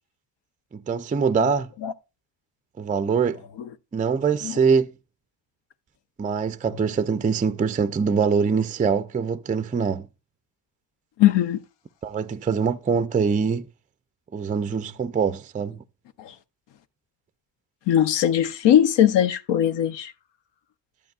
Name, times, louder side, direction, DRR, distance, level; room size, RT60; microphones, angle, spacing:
voice 1, 0.7-1.7 2.8-3.4 3.9-4.9 6.2-10.1 12.0-13.7 14.3-15.8, right 5 dB, 20° right, 0.4 m, -23 dB
voice 2, 11.2-11.6 16.2-16.3 17.9-20.1, left 11 dB, 75° left, 0.8 m, -20 dB
10.5 x 8.4 x 2.3 m
cardioid pair, 100°, 43 cm